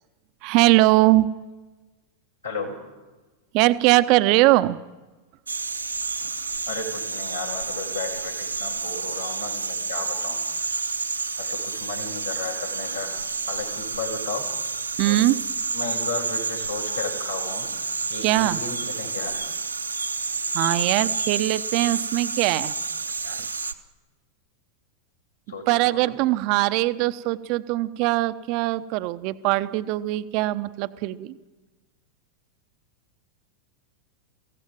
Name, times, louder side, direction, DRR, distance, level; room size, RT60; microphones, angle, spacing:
voice 1, 0.4-1.3 3.5-4.8 15.0-15.3 18.2-18.6 20.5-22.7 23.2-23.4 25.7-31.3, right 18 dB, 45° right, 14 dB, 0.8 m, -21 dB
voice 2, 2.4-2.8 6.7-10.8 11.4-14.5 15.0-15.2 15.7-19.5 25.5-26.2, left 4 dB, 80° left, -2 dB, 5.9 m, -34 dB
sound 1, 5.5-23.7, right 4 dB, 80° right, 1.1 m, -29 dB
23.5 x 16.0 x 9.2 m, 1.2 s
figure-of-eight pair, 90°, 0 cm